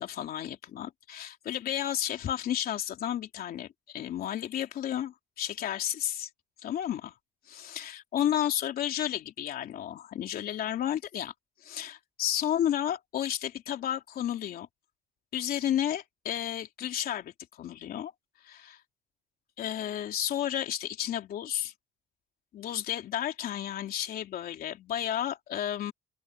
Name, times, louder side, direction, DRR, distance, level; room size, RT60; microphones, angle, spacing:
voice 1, 0.0-6.3 6.6-7.1 7.5-11.3 11.6-14.7 15.3-17.3 17.6-18.1 18.4-18.8 19.6-21.7 22.5-25.9, left 11 dB, 60° left, 3.4 m, -32 dB
open air
cardioid pair, 110°, 17 cm